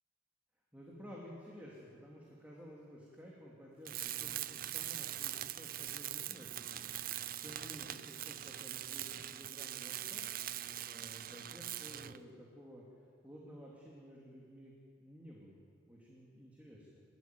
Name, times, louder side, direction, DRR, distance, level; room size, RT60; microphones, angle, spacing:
voice 1, 0.7-10.2 10.8-12.8 13.2-14.7 15.0-17.0, equal, 10° right, -4 dB, 3.0 m, -53 dB
Tools, 3.8-12.2, right 12 dB, 45° right, 0.5 m, -42 dB
29.0 x 13.0 x 9.4 m, 2.3 s
head